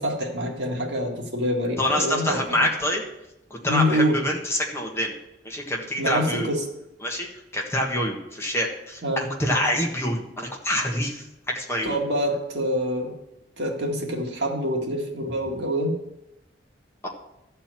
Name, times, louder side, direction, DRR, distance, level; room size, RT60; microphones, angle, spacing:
voice 1, 0.0-2.4 3.6-4.2 6.0-6.6 9.0-9.3 11.8-13.1 13.6-16.0, equal, 70° right, 0 dB, 2.0 m, -26 dB
voice 2, 1.8-3.0 3.5-5.1 5.4-6.5 7.0-7.3 7.5-12.0 17.0-17.1, left 1 dB, 15° left, 0 dB, 1.5 m, -26 dB
13.0 x 4.5 x 7.6 m, 0.89 s
head